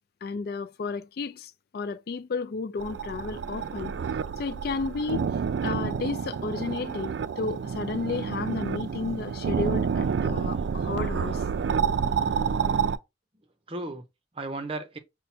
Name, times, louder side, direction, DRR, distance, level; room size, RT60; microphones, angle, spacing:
voice 1, 0.2-3.9 4.4-5.3 5.6-11.4, left 4 dB, 55° left, 0.3 m, -32 dB
sound 1, 2.8-13.0, right 6 dB, 70° right, 0.3 m, -29 dB
voice 2, 10.3-11.7 13.7-14.0 14.3-15.0, right 2 dB, 30° right, 0.6 m, -38 dB
5.5 x 2.1 x 4.2 m
head